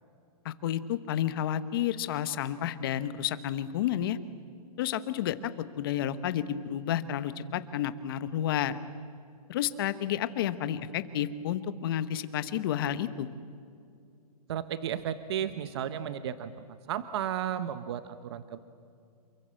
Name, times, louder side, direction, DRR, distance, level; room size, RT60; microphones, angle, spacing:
voice 1, 0.4-4.2 4.8-5.5 5.8-8.8 9.5-13.3, left 10 dB, 35° left, 14 dB, 1.1 m, -31 dB
voice 2, 14.5-16.5 16.9-18.6, right 9 dB, 40° right, 12 dB, 0.9 m, -33 dB
28.0 x 23.5 x 7.7 m, 2.4 s
hypercardioid pair, 170°, 20 cm